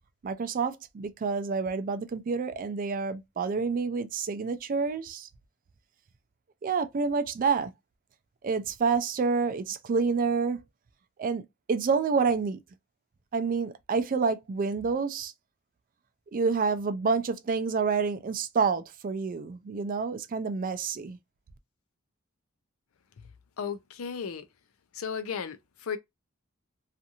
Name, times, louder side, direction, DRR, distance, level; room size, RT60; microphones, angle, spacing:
voice 1, 0.2-5.3 6.6-7.7 8.4-10.6 11.2-12.6 13.3-15.3 16.3-21.2, right 5 dB, 40° right, 0.4 m, -28 dB
voice 2, 23.6-24.4 24.9-26.0, left 6 dB, 80° left, 0.5 m, -35 dB
2.5 x 2.5 x 2.7 m
head